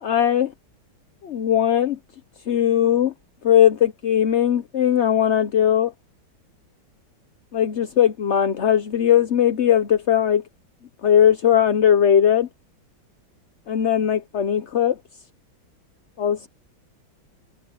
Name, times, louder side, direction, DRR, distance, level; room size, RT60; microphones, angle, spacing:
voice 1, 0.0-0.5 1.2-2.0 2.5-3.1 3.4-5.9 7.5-10.4 11.0-12.5 13.7-15.0 16.2-16.5, left 9 dB, 55° left, 0.8 m, -19 dB
omnidirectional pair, 2.2 m